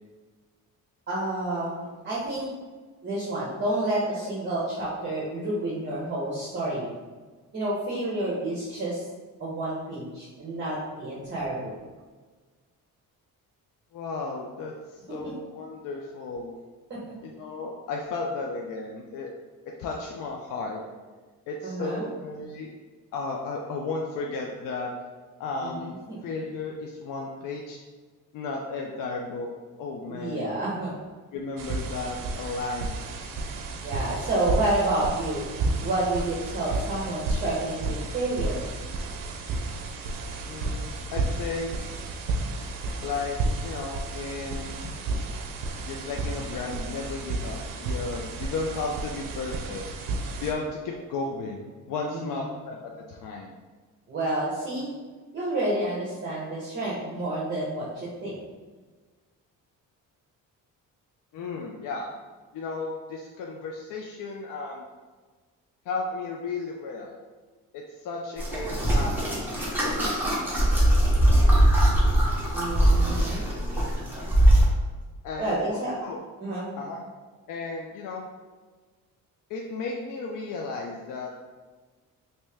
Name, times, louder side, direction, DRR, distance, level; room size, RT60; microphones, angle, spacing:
voice 1, 1.1-2.5 3.0-6.9 7.5-9.0 9.4-11.7 15.1-15.3 16.9-17.0 21.6-22.1 25.6-26.3 30.1-31.0 33.7-35.4 35.8-38.6 52.1-52.5 54.1-54.9 55.3-58.4 72.5-73.4 75.4-76.0 76.4-76.7, right 1 dB, 30° right, -7 dB, 0.9 m, -29 dB
voice 2, 13.9-16.6 17.2-19.3 19.8-20.8 21.5-22.7 23.1-24.9 25.4-27.8 28.3-29.5 29.8-30.6 31.3-33.0 40.5-41.8 43.0-44.9 45.9-49.8 50.4-53.5 61.3-62.1 62.5-64.9 65.9-67.2 67.7-69.4 75.2-75.6 76.0-76.2 76.8-77.0 77.5-78.3 79.5-81.3, left 3 dB, 65° left, 0 dB, 0.5 m, -34 dB
sound 1, 31.6-50.5, right 3 dB, 70° right, 0.6 m, -32 dB
sound 2, 68.4-74.7, right 1 dB, 5° right, 0.9 m, -21 dB
3.1 x 2.8 x 3.3 m, 1.4 s
cardioid pair, 115°, 34 cm